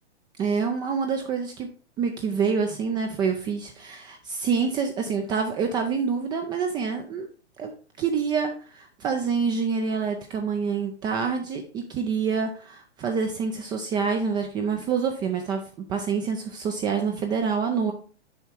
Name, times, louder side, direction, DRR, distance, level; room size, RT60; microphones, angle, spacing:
voice 1, 0.4-1.7 2.0-7.3 7.6-7.7 8.0-17.9, right 5 dB, 15° right, 4 dB, 0.4 m, -27 dB
7.0 x 4.6 x 4.4 m, 0.38 s
hypercardioid pair, 125°, 34 cm